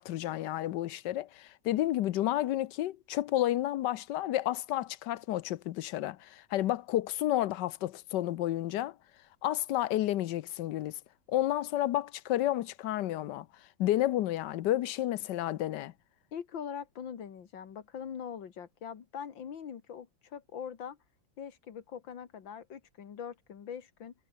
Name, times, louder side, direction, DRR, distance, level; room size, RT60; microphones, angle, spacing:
voice 1, 0.0-8.9 9.4-11.0 11.3-13.5 13.8-15.9, left 14 dB, 70° left, 1.3 m, -31 dB
voice 2, 16.3-21.0 21.4-24.1, left 8 dB, 90° left, 2.4 m, -42 dB
omnidirectional pair, 2.0 m